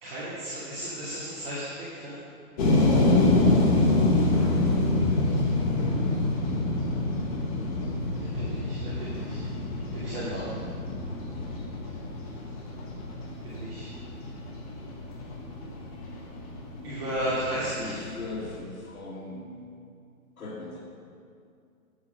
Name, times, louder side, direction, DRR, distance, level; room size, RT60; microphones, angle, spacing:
voice 1, 0.0-2.2 4.1-4.5 8.2-9.4 9.9-10.5 13.4-13.9 16.8-18.0, right 1 dB, 40° right, -10 dB, 2.7 m, -34 dB
Thunder, 2.4-3.2 3.6-13.2 14.7-15.5, left 1 dB, 40° left, 2.1 m, -40 dB
sound 1, 2.6-18.6, left 2 dB, 25° left, 1.4 m, -26 dB
voice 2, 11.3-11.7 17.2-19.7 20.4-20.8, left 2 dB, 65° left, -6 dB, 1.9 m, -40 dB
9.5 x 8.5 x 5.7 m, 2.3 s
hypercardioid pair, 160°, 45 cm